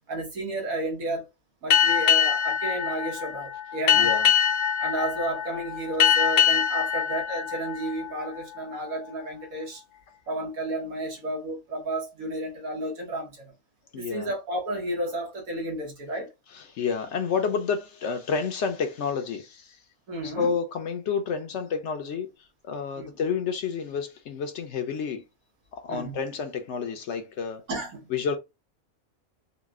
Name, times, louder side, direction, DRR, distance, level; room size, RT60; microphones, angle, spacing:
voice 1, 0.1-1.3 1.6-4.1 4.8-9.8 10.3-13.5 13.9-16.3 20.1-20.5 22.9-23.2 25.9-26.2 27.7-28.0, right 1 dB, 80° right, 1.6 m, -32 dB
Boat Water vehicle, 1.7-8.8, left 8 dB, 80° left, 1.1 m, -24 dB
voice 2, 3.9-4.3 13.9-14.3 16.5-19.8 20.2-22.3 22.6-25.2 25.7-27.6 28.1-28.4, left 6 dB, 65° left, 0.8 m, -29 dB
4.0 x 2.2 x 2.4 m
omnidirectional pair, 1.5 m